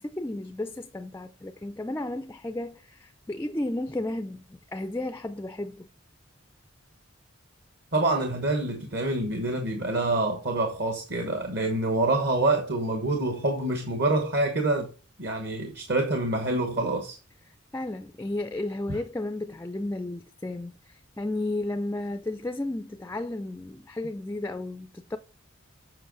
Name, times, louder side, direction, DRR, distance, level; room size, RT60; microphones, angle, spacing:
voice 1, 0.0-5.9 17.5-25.2, left 2 dB, 10° left, 0.3 m, -33 dB
voice 2, 7.9-14.9 15.2-17.2, right 2 dB, 55° right, 1.2 m, -26 dB
7.8 x 5.4 x 3.8 m
head